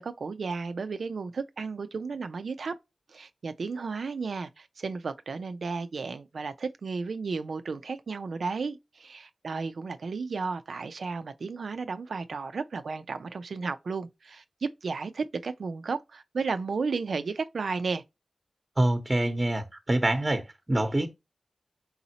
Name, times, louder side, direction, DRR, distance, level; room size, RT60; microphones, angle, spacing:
voice 1, 0.0-2.7 3.1-18.0, right 4 dB, 80° right, 0.6 m, -33 dB
voice 2, 18.8-21.1, right 1 dB, 30° right, 1.0 m, -26 dB
4.2 x 3.9 x 2.8 m
cardioid pair, 55°, 0 cm